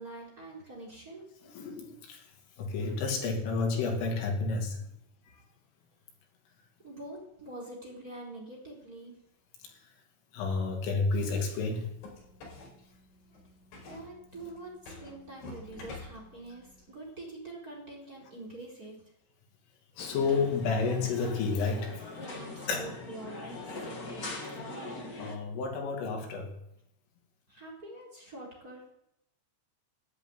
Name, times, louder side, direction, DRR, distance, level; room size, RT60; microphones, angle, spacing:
voice 1, 0.0-1.3 6.8-9.2 13.8-19.0 22.2-23.9 27.5-28.9, right 2 dB, 20° right, 0 dB, 4.1 m, -45 dB
voice 2, 1.4-2.2 2.6-4.8 10.3-11.9 20.0-22.0 22.7-23.0 25.2-26.5, left 4 dB, 85° left, 2 dB, 5.2 m, -30 dB
sound 1, 11.8-16.8, left 2 dB, 70° left, 7.4 m, -49 dB
sound 2, 20.0-25.4, left 2 dB, 40° left, 1.3 m, -41 dB
13.0 x 11.5 x 9.4 m, 0.81 s
omnidirectional pair, 5.5 m